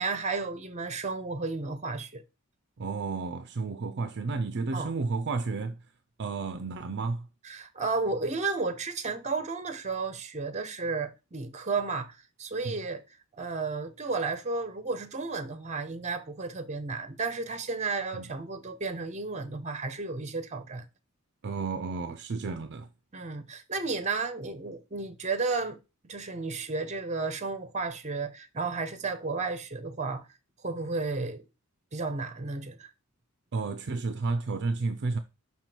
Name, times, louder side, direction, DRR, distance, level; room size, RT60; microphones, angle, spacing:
voice 1, 0.0-2.2 4.7-4.9 7.4-13.0 13.4-20.8 23.1-25.8 26.0-30.2 30.6-31.4 31.9-32.9, right 4 dB, 35° right, 0.9 m, -33 dB
voice 2, 2.8-5.8 6.2-7.3 12.6-12.8 18.1-18.2 21.4-22.9 33.5-35.2, right 4 dB, 55° right, 0.5 m, -32 dB
5.8 x 5.8 x 4.5 m
head